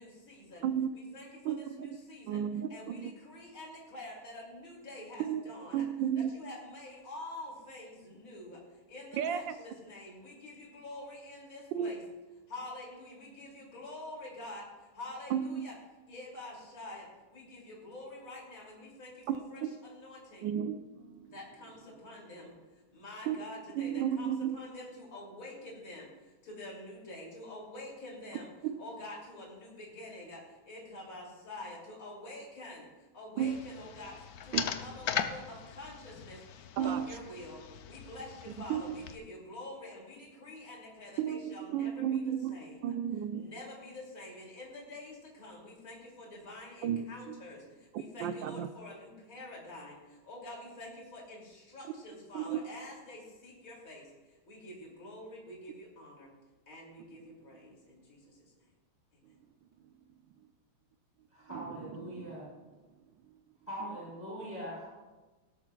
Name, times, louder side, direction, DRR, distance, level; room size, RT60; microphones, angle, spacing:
voice 1, 0.0-0.7 0.9-2.4 2.7-5.9 6.1-12.0 12.5-14.7 14.9-15.7 16.1-20.5 21.2-22.5 22.9-28.5 28.8-34.2 34.4-42.9 43.3-56.3 56.7-58.5 59.1-59.2, left 1 dB, 40° left, -3 dB, 3.2 m, -47 dB
voice 2, 1.4-1.9 2.3-3.1 5.2-5.5 5.7-6.3 9.1-9.5 11.7-11.9 15.3-15.7 19.3-19.4 20.4-21.4 23.3-23.4 23.7-24.6 28.6-28.7 33.4-33.6 34.5-34.6 36.8-37.1 38.7-38.9 41.2-42.6 42.8-43.5 46.8-47.4 47.9-48.7 52.3-52.6 61.5-62.4 63.3-63.4, right 9 dB, 75° right, 10 dB, 1.3 m, -33 dB
sound 1, 33.4-39.2, left 8 dB, 70° left, 0.9 m, -39 dB
voice 3, 61.3-62.5 63.7-64.9, equal, 20° left, -6 dB, 4.3 m, -42 dB
17.0 x 13.0 x 2.4 m, 1.2 s
omnidirectional pair, 2.3 m